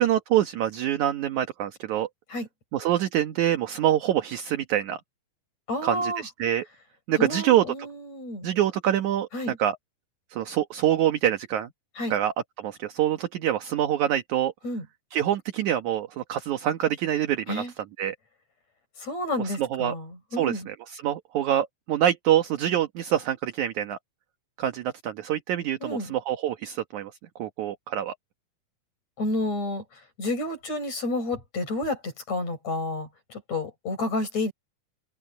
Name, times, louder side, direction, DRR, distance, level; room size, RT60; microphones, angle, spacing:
voice 1, 0.0-2.1 2.7-5.0 5.8-6.7 7.1-7.7 8.4-9.3 9.6-9.8 10.3-11.7 12.1-14.5 15.1-18.1 19.4-19.9 20.4-24.0 24.6-27.1 27.4-28.1, right 11 dB, 60° right, 2.4 m, -25 dB
voice 2, 5.7-6.3 7.2-8.5 9.3-9.6 12.0-12.1 14.6-14.8 17.5-17.7 19.0-20.7 25.8-26.1 29.2-29.8 30.2-34.5, left 2 dB, 45° left, 7.8 m, -30 dB
omnidirectional pair, 4.3 m